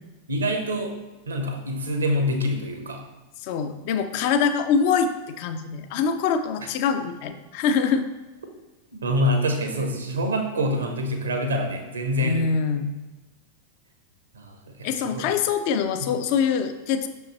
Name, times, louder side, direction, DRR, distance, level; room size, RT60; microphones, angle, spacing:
voice 1, 0.3-0.9 1.3-3.0 8.9-12.4 14.3-15.3, equal, 70° right, 4 dB, 1.0 m, -26 dB
voice 2, 3.4-8.1 12.2-13.0 14.8-17.1, left 6 dB, 45° left, 8 dB, 0.5 m, -24 dB
6.4 x 5.4 x 3.1 m, 1.2 s
figure-of-eight pair, 90°, 0 cm